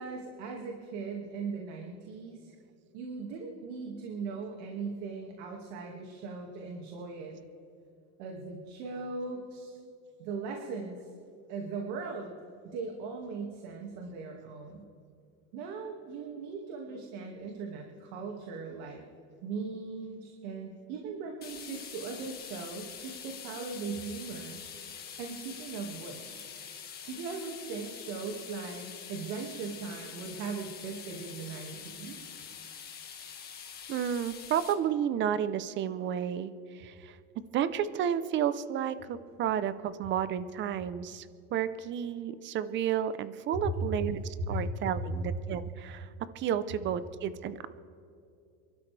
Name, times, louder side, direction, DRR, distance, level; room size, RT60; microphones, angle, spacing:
voice 1, 0.0-2.5 2.9-7.4 8.2-9.8 10.2-11.1 11.5-12.3 12.6-14.9 15.5-19.0 19.4-24.6 25.2-26.4 27.1-32.3 44.5-44.6, right 4 dB, 75° right, 1 dB, 2.2 m, -39 dB
sound 1, 21.4-34.7, left 7 dB, 30° left, 1.9 m, -45 dB
voice 2, 33.9-37.2 37.5-46.1 46.3-47.7, right 9 dB, 35° right, 14 dB, 0.7 m, -32 dB
28.0 x 12.5 x 3.4 m, 2.5 s
cardioid pair, 145°, 33 cm